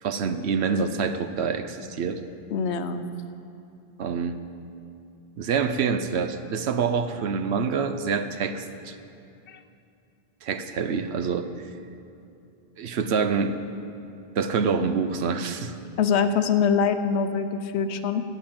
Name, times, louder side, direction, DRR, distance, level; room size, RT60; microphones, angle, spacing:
voice 1, 0.0-2.2 4.0-4.4 5.4-9.0 10.4-11.5 12.8-13.6 14.3-15.8, right 5 dB, 75° right, 9 dB, 1.0 m, -26 dB
voice 2, 2.5-3.0 9.5-9.6 16.0-18.2, left 6 dB, 85° left, 10 dB, 1.0 m, -24 dB
15.0 x 5.6 x 8.7 m, 2.6 s
omnidirectional pair, 1.1 m